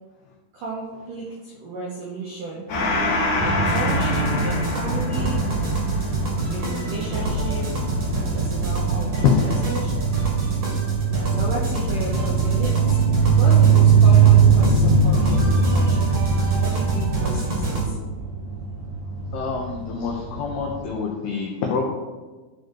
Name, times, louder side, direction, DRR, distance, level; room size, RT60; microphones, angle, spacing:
voice 1, 0.5-2.6 3.4-5.4 6.5-7.9 8.3-10.0 11.3-13.1 13.4-18.3 19.1-19.5, right 2 dB, 75° right, -5 dB, 2.0 m, -34 dB
Gong, 2.7-9.6, left 2 dB, 55° left, 2.1 m, -28 dB
sound 1, 3.3-20.8, right 6 dB, 20° right, 0.7 m, -22 dB
sound 2, 3.6-17.8, right 2 dB, 50° right, 1.9 m, -26 dB
voice 2, 19.3-21.9, left 7 dB, 85° left, 0 dB, 2.2 m, -25 dB
12.0 x 4.8 x 4.6 m, 1.3 s
omnidirectional pair, 5.9 m